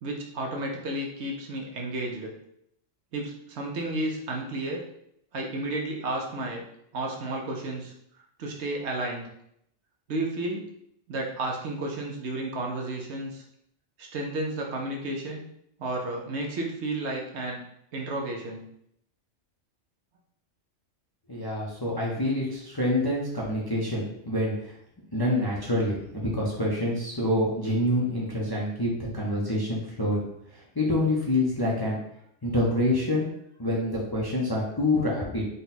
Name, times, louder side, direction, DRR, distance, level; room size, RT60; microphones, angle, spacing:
voice 1, 0.0-2.3 3.1-4.8 5.3-6.6 6.9-7.9 8.4-9.3 10.1-10.6 11.1-13.4 14.0-15.4 15.8-17.6 17.9-18.6, right 2 dB, 65° right, 0 dB, 1.0 m, -32 dB
voice 2, 21.3-24.7 25.1-30.3 30.5-32.0 32.4-33.3 33.6-35.5, left 1 dB, 25° left, -5 dB, 0.6 m, -27 dB
3.9 x 2.3 x 4.1 m, 0.74 s
omnidirectional pair, 1.3 m